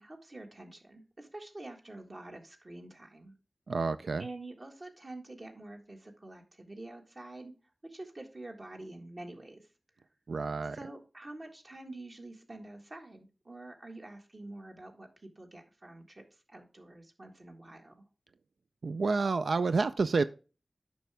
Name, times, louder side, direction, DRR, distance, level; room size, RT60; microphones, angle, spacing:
voice 1, 0.0-3.3 4.2-7.5 7.8-9.7 10.7-15.1 15.4-16.2 16.5-18.0, right 2 dB, 45° right, 1.6 m, -47 dB
voice 2, 3.7-4.2 10.3-10.8 18.8-20.2, right 4 dB, 85° right, 0.3 m, -29 dB
9.3 x 5.8 x 3.3 m
wide cardioid pair, 55°, 0 cm